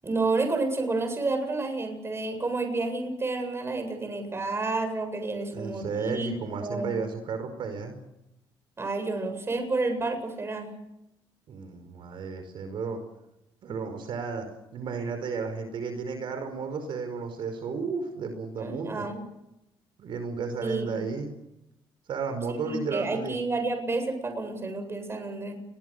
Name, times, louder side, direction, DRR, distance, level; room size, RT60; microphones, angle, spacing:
voice 1, 0.0-6.3 6.6-6.9 8.8-10.7 18.6-19.2 20.6-21.1 22.5-25.6, right 3 dB, 30° right, 6 dB, 7.9 m, -30 dB
voice 2, 5.5-8.0 11.5-13.0 13.6-14.5 14.7-19.1 20.0-21.3 22.1-23.4, right 5 dB, 65° right, 7 dB, 5.1 m, -33 dB
28.5 x 22.5 x 6.9 m, 0.88 s
cardioid pair, 95°, 9 cm